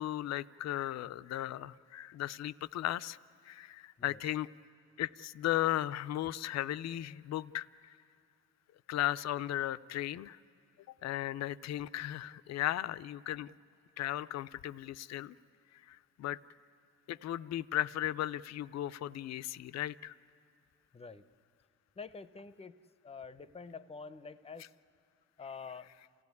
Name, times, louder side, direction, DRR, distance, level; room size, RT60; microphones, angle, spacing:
voice 1, 0.0-3.2 3.4-4.5 5.0-8.0 8.9-10.4 11.0-13.5 14.0-15.4 15.7-16.4 17.1-20.1, left 13 dB, 60° left, 15 dB, 0.5 m, -36 dB
voice 2, 20.9-21.3 22.0-22.8 23.0-24.7 25.4-25.9, left 5 dB, 20° left, 13 dB, 0.7 m, -47 dB
28.5 x 16.0 x 9.6 m, 2.4 s
cardioid pair, 90°, 30 cm